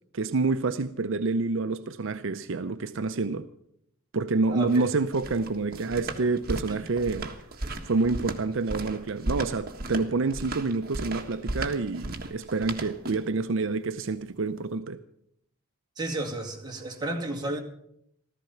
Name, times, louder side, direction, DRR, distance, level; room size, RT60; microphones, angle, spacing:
voice 1, 0.1-3.5 4.1-7.3 7.8-15.0, right 3 dB, 60° right, 0.6 m, -28 dB
voice 2, 4.5-4.9 6.7-6.9 16.0-17.6, right 2 dB, 20° right, 2.2 m, -33 dB
sound 1, 4.5-13.4, right 2 dB, 45° right, 1.6 m, -35 dB
15.0 x 14.0 x 5.8 m
head